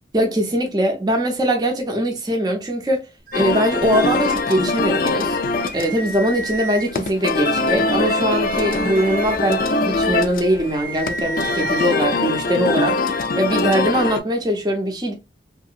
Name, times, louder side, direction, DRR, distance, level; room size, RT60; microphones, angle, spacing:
voice 1, 0.1-3.1 3.3-15.1, equal, 25° right, 0.6 m, -21 dB
sound 1, 3.3-14.2, left 3 dB, 50° left, 0.4 m, -23 dB
sound 2, 3.3-4.8 5.2-5.3 5.6-7.1 7.7-12.0, right 3 dB, 50° right, 0.8 m, -33 dB
2.8 x 2.7 x 2.4 m
head